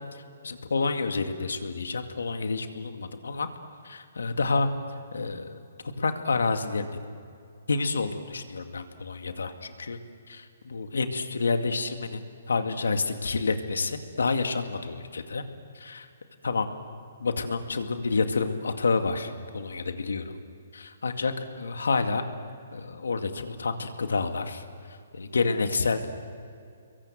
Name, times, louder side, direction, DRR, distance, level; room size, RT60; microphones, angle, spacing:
voice 1, 0.1-3.5 3.8-4.7 5.1-5.6 6.0-7.0 7.7-10.0 10.3-12.2 12.5-15.4 15.7-16.1 16.4-16.7 17.2-20.4 20.7-22.2 22.7-24.6 25.1-26.0, left 4 dB, 90° left, 7 dB, 2.2 m, -29 dB
28.0 x 22.5 x 7.8 m, 2.4 s
hypercardioid pair, 155°, 0 cm